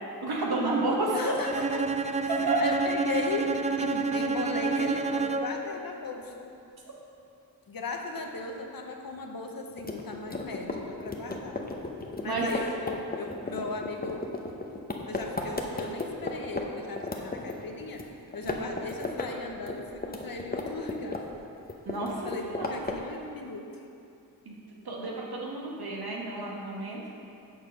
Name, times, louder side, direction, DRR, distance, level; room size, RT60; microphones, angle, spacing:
voice 1, 0.2-1.3 2.5-2.6 12.2-12.5 18.4-18.8 21.8-22.7 24.4-24.5 24.8-27.0, right 2 dB, 80° right, -2 dB, 1.3 m, -31 dB
voice 2, 1.1-6.5 7.7-11.6 12.2-14.2 15.1-18.1 18.3-21.2 22.2-23.7, left 3 dB, 65° left, 3 dB, 0.9 m, -37 dB
Bowed string instrument, 1.4-5.7, right 4 dB, 20° right, 0.3 m, -29 dB
sound 1, 9.8-16.6 17.0-18.1 18.3-19.3 19.6-21.4 21.7-23.1, left 3 dB, 25° left, 0.8 m, -34 dB
7.1 x 4.1 x 6.3 m, 2.6 s
cardioid pair, 45°, 37 cm